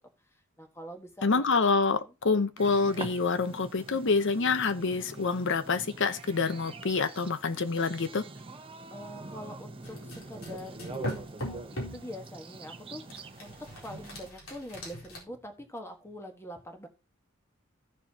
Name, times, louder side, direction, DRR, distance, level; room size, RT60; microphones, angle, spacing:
voice 1, 0.2-1.3 1.9-2.1 8.9-13.5 13.8-16.9, equal, 10° left, 1.5 m, -44 dB
voice 2, 1.2-8.2, left 4 dB, 60° left, 0.9 m, -27 dB
sound 1, 2.6-14.3, right 3 dB, 25° right, 0.8 m, -45 dB
sound 2, 9.8-12.1 13.1-15.2, equal, 85° left, 4.1 m, -40 dB
15.0 x 6.9 x 2.9 m
head